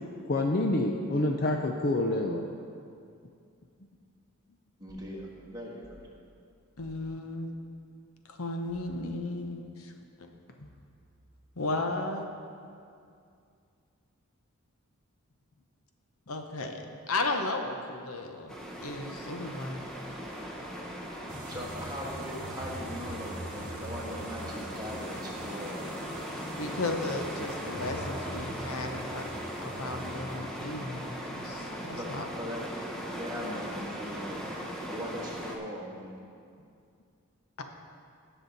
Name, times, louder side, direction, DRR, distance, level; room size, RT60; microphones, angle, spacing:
voice 1, 0.3-2.5 10.6-10.7, left 1 dB, 40° left, 3 dB, 0.5 m, -27 dB
voice 2, 4.8-6.0 21.5-25.9 32.0-32.1 32.4-32.8 33.1-34.4 34.9-36.1, equal, 15° right, -4 dB, 1.5 m, -40 dB
sound 1, 4.9-5.1 5.8-6.1 6.8-7.0 8.7-9.0 10.6-11.1, equal, 25° left, 2.3 m, -57 dB
voice 3, 6.8-7.5 8.3-9.9 11.6-12.3 16.3-18.5 18.8-19.8 26.6-29.3 29.6-32.2 37.6-37.7, left 2 dB, 75° left, 4 dB, 0.9 m, -34 dB
sound 2, 18.5-35.6, equal, ahead, 0.9 m, -39 dB
sound 3, 21.3-30.4, right 1 dB, 35° right, 1.3 m, -44 dB
17.5 x 6.1 x 4.0 m, 2.4 s
head